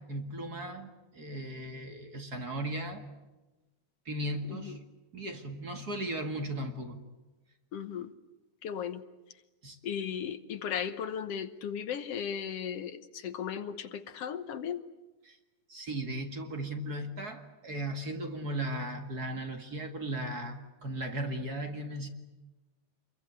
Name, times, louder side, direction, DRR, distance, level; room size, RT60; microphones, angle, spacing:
voice 1, 0.0-3.0 4.1-4.8 5.1-7.0 9.6-9.8 15.2-15.4 15.7-22.1, right 1 dB, 35° right, 5 dB, 2.1 m, -37 dB
voice 2, 7.7-8.1 8.6-9.0 9.8-14.8, left 8 dB, 60° left, 11 dB, 1.8 m, -36 dB
27.5 x 23.0 x 9.5 m, 1.1 s
omnidirectional pair, 3.5 m